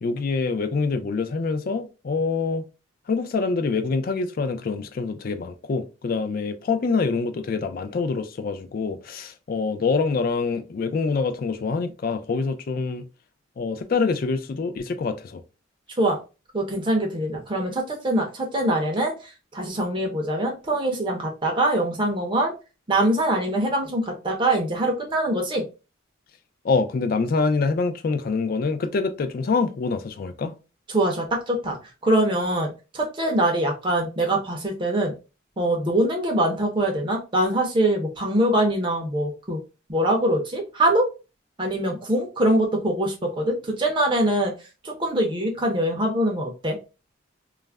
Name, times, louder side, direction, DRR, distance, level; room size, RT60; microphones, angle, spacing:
voice 1, 0.0-2.7 3.1-13.0 13.6-15.4 26.6-30.5, left 4 dB, 45° left, 0.3 m, -25 dB
voice 2, 16.5-19.1 19.5-22.5 22.9-25.6 30.9-31.8 32.0-35.1 35.6-39.6 39.9-41.1 41.6-44.5 44.8-46.8, right 1 dB, 25° right, 0.5 m, -23 dB
2.3 x 2.0 x 3.2 m
head